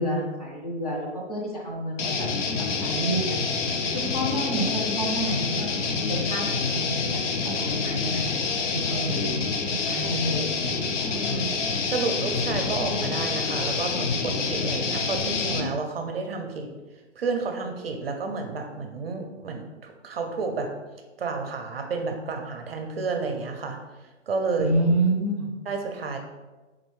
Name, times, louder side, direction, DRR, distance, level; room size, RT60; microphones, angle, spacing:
voice 1, 0.0-2.3 2.6-3.6 3.9-8.3 8.7-9.3 9.8-10.5 24.6-25.5, right 1 dB, 35° left, -2 dB, 0.5 m, -29 dB
sound 1, 2.0-15.7, left 4 dB, 75° left, 0.6 m, -27 dB
voice 2, 11.1-16.7 17.2-20.7 21.2-23.8 24.3-24.7 25.7-26.2, right 4 dB, 55° right, 4 dB, 0.5 m, -31 dB
3.8 x 2.7 x 3.0 m, 1.2 s
hypercardioid pair, 165°, 37 cm